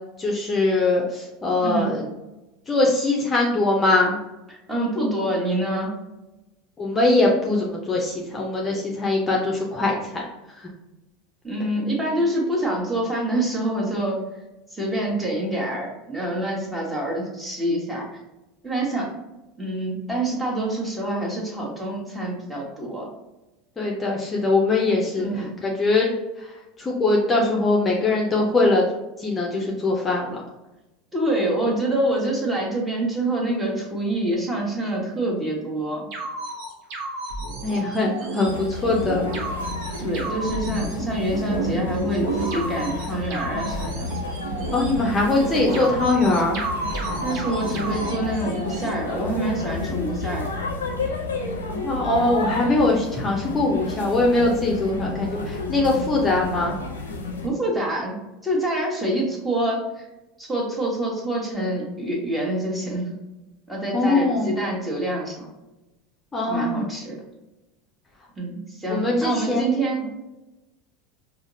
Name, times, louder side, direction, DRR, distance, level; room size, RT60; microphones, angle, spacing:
voice 1, 0.2-2.0 2.7-4.2 6.8-10.0 23.8-25.3 25.6-26.1 26.8-28.8 29.2-30.4 37.6-39.3 44.7-46.6 51.7-56.8 63.9-64.5 66.3-66.9 68.9-69.6, left 2 dB, 25° left, -2 dB, 0.6 m, -21 dB
voice 2, 1.6-1.9 4.5-5.9 11.4-14.2 14.7-18.1 18.6-19.1 19.6-23.1 25.1-25.5 31.1-36.1 40.0-44.1 47.2-50.5 57.4-60.1 60.4-63.2 63.7-65.5 66.5-67.2 68.4-70.1, right 1 dB, 15° right, -3 dB, 1.2 m, -26 dB
sound 1, 36.1-48.9, right 3 dB, 55° right, 0.8 m, -31 dB
sound 2, 38.4-57.5, left 3 dB, 85° left, 0.5 m, -31 dB
4.8 x 2.0 x 2.7 m, 1.0 s
hypercardioid pair, 80°, 0 cm